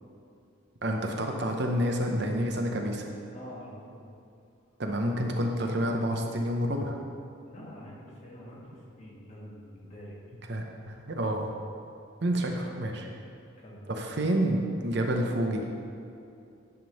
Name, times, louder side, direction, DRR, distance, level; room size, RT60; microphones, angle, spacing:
voice 1, 0.8-3.1 4.8-7.0 10.5-11.5 12.2-13.1 13.9-15.7, equal, 50° right, 2 dB, 0.7 m, -29 dB
voice 2, 3.3-4.0 7.4-10.2 13.6-13.8, equal, 35° left, -5 dB, 1.7 m, -46 dB
10.5 x 3.7 x 6.3 m, 2.6 s
head